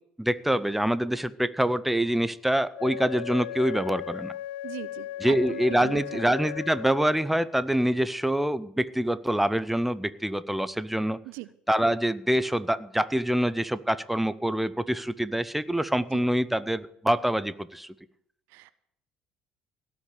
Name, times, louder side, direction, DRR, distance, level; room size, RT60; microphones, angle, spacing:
voice 1, 0.2-4.3 5.2-11.2 11.7-17.9, right 1 dB, 5° right, 15 dB, 0.8 m, -25 dB
Wind instrument woodwind instrument, 2.7-7.4, left 13 dB, 65° left, 0.6 m, -37 dB
voice 2, 4.6-6.2 11.3-11.5 16.1-16.2 18.5-18.7, right 19 dB, 65° right, 17 dB, 0.5 m, -40 dB
17.0 x 6.1 x 8.4 m, 0.72 s
figure-of-eight pair, 55°, 4 cm